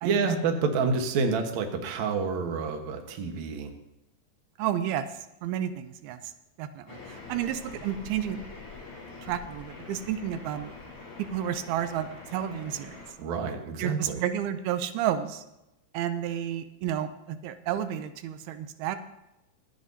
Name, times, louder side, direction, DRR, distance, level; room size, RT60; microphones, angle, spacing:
voice 1, 0.0-3.7 13.2-14.2, right 4 dB, 60° right, 4 dB, 2.2 m, -28 dB
voice 2, 4.6-5.1 5.4-6.3 6.6-8.4 9.2-10.7 11.3-13.0 13.8-15.4 15.9-19.0, right 10 dB, 85° right, 10 dB, 2.6 m, -31 dB
sound 1, 6.9-13.1, left 3 dB, 40° left, 3.9 m, -44 dB
24.5 x 8.5 x 2.7 m, 0.92 s
omnidirectional pair, 4.3 m